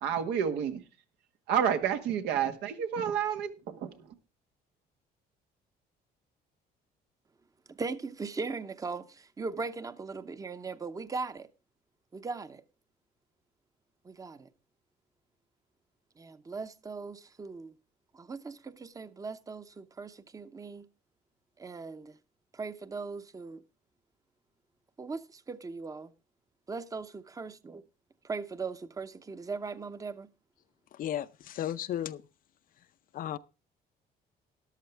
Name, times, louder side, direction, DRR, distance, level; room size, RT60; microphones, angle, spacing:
voice 1, 0.0-0.8 1.5-3.9, right 8 dB, 90° right, 1.7 m, -29 dB
voice 2, 7.7-11.5 12.1-12.6 14.0-14.5 16.2-17.7 18.1-20.9 21.6-22.1 22.5-23.6 25.0-26.1 26.7-27.8 28.2-30.3, right 4 dB, 20° right, 0.8 m, -39 dB
voice 3, 31.0-32.2 33.1-33.4, left 11 dB, 55° left, 0.6 m, -34 dB
13.5 x 11.5 x 3.4 m
cardioid pair, 110°, 17 cm